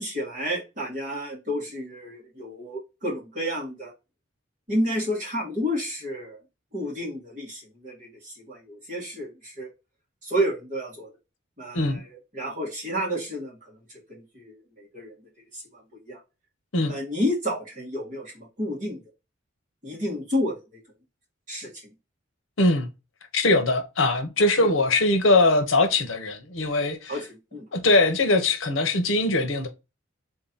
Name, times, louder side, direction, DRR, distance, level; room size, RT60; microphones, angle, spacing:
voice 1, 0.0-3.9 4.7-6.4 6.7-9.7 10.2-11.1 11.6-15.2 15.5-16.2 16.9-19.0 19.8-20.8 21.5-21.9 24.6-24.7 27.1-27.7, equal, 40° right, 2.1 m, -31 dB
voice 2, 22.6-22.9 23.3-27.2 27.7-29.7, left 2 dB, 75° left, 0.9 m, -21 dB
3.7 x 2.9 x 3.9 m
head